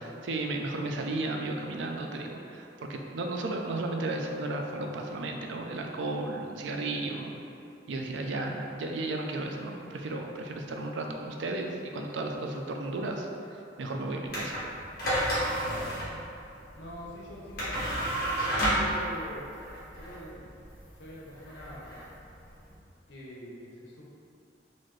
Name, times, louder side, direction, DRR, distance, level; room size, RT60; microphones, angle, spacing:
voice 1, 0.2-7.3 7.9-13.3 13.8-14.6, right 2 dB, 80° right, 2 dB, 0.4 m, -34 dB
sound 1, 14.3-22.8, right 1 dB, 55° left, 1.1 m, -32 dB
voice 2, 15.5-16.0 16.8-17.8 18.4-19.5 19.9-20.4 21.0-21.9 23.1-24.0, equal, 90° left, -4 dB, 0.7 m, -44 dB
4.1 x 2.6 x 3.1 m, 2.6 s
head